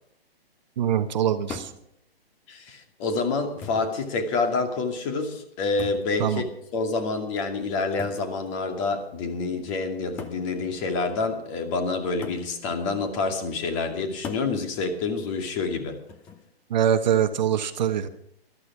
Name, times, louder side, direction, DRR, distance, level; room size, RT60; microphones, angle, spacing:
voice 1, 0.8-1.7 6.2-6.4 16.7-18.1, right 9 dB, 45° right, 10 dB, 1.1 m, -23 dB
sound 1, 1.5-1.9 2.9-3.0 3.6-4.0 5.8-6.1 8.0-8.3 9.3-9.4 10.2-10.5 12.2-12.5 14.2-14.5 16.1-16.5, left 5 dB, 5° left, 0.5 m, -38 dB
voice 2, 2.5-6.4 6.7-16.0, left 3 dB, 30° left, 5 dB, 2.4 m, -27 dB
14.0 x 12.5 x 6.1 m, 0.73 s
hypercardioid pair, 145°, 31 cm